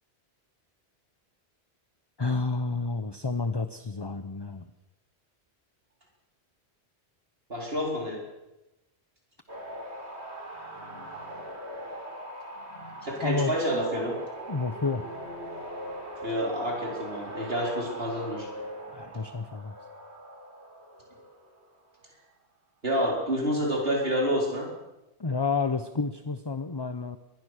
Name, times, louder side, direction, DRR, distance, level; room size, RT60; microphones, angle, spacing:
voice 1, 2.2-4.7 13.2-13.6 14.5-15.1 18.9-19.8 25.2-27.2, left 4 dB, 25° left, 10 dB, 0.9 m, -30 dB
voice 2, 7.5-8.2 13.0-14.1 16.2-18.5 22.8-24.7, equal, 65° right, -1 dB, 4.6 m, -28 dB
sound 1, 9.5-21.9 25.7-25.9, right 1 dB, 85° right, 4.3 m, -41 dB
23.5 x 20.0 x 6.6 m, 0.97 s
omnidirectional pair, 1.1 m